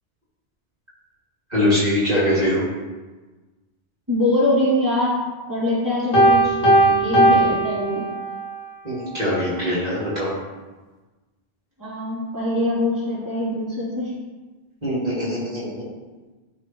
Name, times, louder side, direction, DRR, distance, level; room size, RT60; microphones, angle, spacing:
voice 1, 1.5-2.6 8.8-10.3 14.8-15.7, left 1 dB, 40° right, -10 dB, 2.7 m, -22 dB
voice 2, 4.1-5.2 5.5-6.6 6.9-8.0 11.8-14.1, left 1 dB, 15° right, -10 dB, 2.6 m, -23 dB
Piano, 6.1-8.5, right 1 dB, 60° left, 1.5 m, -17 dB
12.0 x 4.1 x 3.1 m, 1.3 s
omnidirectional pair, 1.1 m